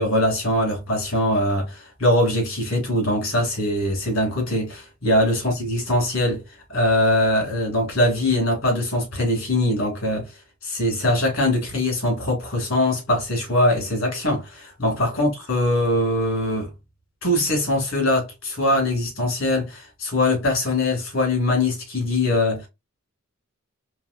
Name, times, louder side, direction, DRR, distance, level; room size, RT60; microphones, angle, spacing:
voice 1, 0.0-6.4 6.7-10.3 10.6-16.7 17.2-22.7, left 1 dB, 65° left, 2.3 m, -22 dB
4.0 x 3.1 x 2.5 m
head